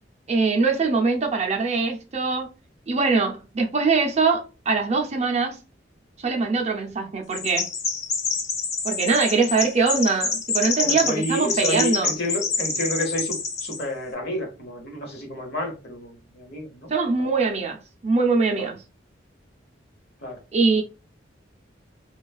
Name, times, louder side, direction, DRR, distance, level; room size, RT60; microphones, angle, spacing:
voice 1, 0.3-2.5 2.9-5.6 6.2-7.7 8.8-12.1 16.9-18.8 20.5-20.8, right 4 dB, 35° right, 0.5 m, -22 dB
Chirp tweet, 7.3-13.8, left 4 dB, 35° left, 0.6 m, -27 dB
voice 2, 10.8-16.9 17.2-17.4 18.6-18.7 20.2-20.4, left 1 dB, 60° left, 1.0 m, -30 dB
3.3 x 2.3 x 2.3 m
head